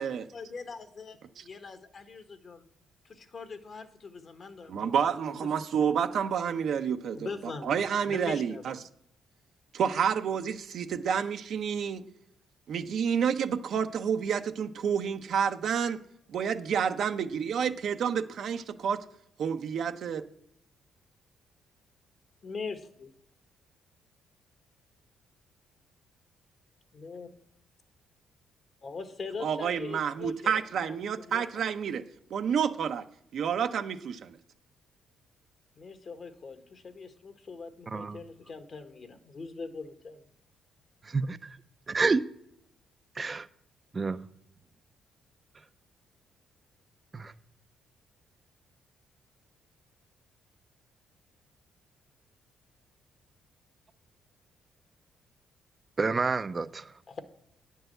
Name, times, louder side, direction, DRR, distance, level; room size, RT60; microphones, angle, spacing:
voice 1, 0.3-2.7 3.1-4.9 5.3-5.5 7.1-8.8 22.4-23.1 26.9-27.3 28.8-31.7 35.8-40.2 57.1-57.2, left 4 dB, 45° left, 1.4 m, -42 dB
voice 2, 4.7-8.8 9.7-12.0 12.7-16.0 16.3-19.0 19.4-20.2 29.4-32.0 32.3-33.0 33.3-34.4, right 7 dB, 65° right, 0.7 m, -29 dB
voice 3, 41.0-41.6 41.9-42.2 43.2-43.5 43.9-44.2 47.1-47.3 56.0-56.9, right 4 dB, 30° right, 0.5 m, -29 dB
9.9 x 4.7 x 7.7 m
cardioid pair, 90°, 0 cm